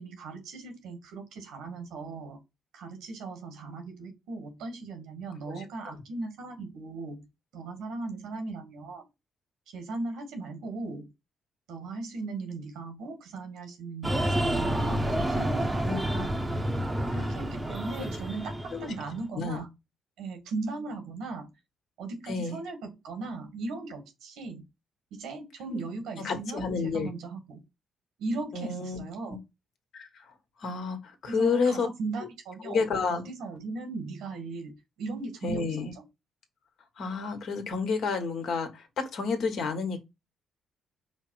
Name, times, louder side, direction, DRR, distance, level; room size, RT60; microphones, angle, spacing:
voice 1, 0.0-2.4 2.7-7.3 7.5-9.0 9.7-11.1 11.7-16.3 17.1-19.7 20.2-21.5 22.0-24.6 25.1-27.6 28.2-29.4 31.3-36.0, right 3 dB, 90° right, 1.6 m, -38 dB
Breathing, 14.0-19.2, right 1 dB, 15° right, 0.7 m, -29 dB
voice 2, 15.8-16.2 18.7-18.9 19.3-19.6 22.3-22.6 26.2-27.1 28.5-29.0 29.9-30.1 30.6-31.9 32.6-33.2 35.4-35.9 37.0-40.1, left 4 dB, 65° left, 1.3 m, -30 dB
5.1 x 2.0 x 4.6 m
cardioid pair, 90°, 0 cm